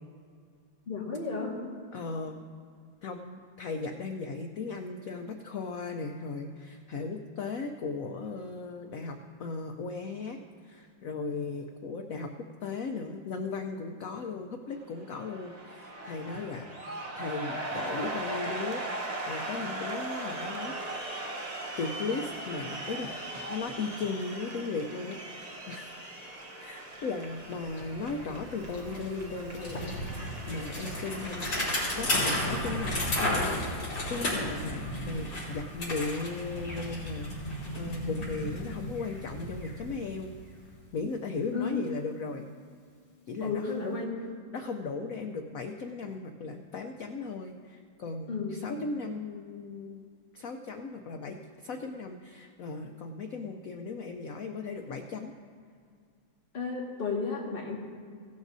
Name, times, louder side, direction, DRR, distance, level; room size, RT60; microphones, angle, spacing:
voice 1, 0.9-1.6 41.5-41.9 43.4-44.2 48.3-48.6 56.5-57.8, left 5 dB, 30° left, -3 dB, 1.8 m, -33 dB
voice 2, 1.9-2.4 3.0-12.3 12.6-20.7 21.8-25.9 26.6-31.5 31.9-40.3 40.9-42.5 43.3-44.0 44.5-50.0 50.3-55.3, left 4 dB, 80° left, 4 dB, 0.7 m, -37 dB
sound 1, 14.9-32.5, right 1 dB, 50° right, 0.4 m, -39 dB
Bicycle, 27.3-27.4 27.6-40.5, left 1 dB, 55° left, 4.1 m, -34 dB
17.0 x 12.0 x 2.7 m, 2.2 s
omnidirectional pair, 2.2 m